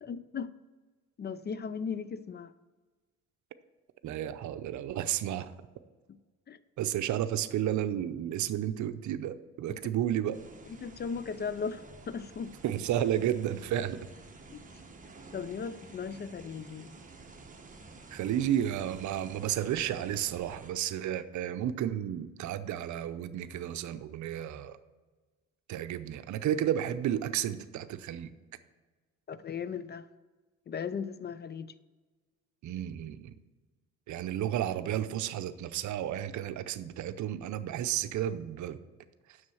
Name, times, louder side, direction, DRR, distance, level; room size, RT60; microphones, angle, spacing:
voice 1, 0.0-0.5 1.2-2.5 6.5-6.6 9.7-9.9 10.7-12.5 14.5-14.6 15.3-16.9 29.3-30.1 30.7-31.7, left 6 dB, 35° left, 0.4 m, -37 dB
voice 2, 4.0-5.5 6.8-10.4 12.6-14.0 18.1-24.8 25.7-28.3 32.6-33.3 34.1-38.8, right 11 dB, 70° right, 0.6 m, -32 dB
sound 1, 10.3-20.7, right 3 dB, 25° right, 1.3 m, -51 dB
7.4 x 6.4 x 6.2 m
cardioid pair, 90°, 30 cm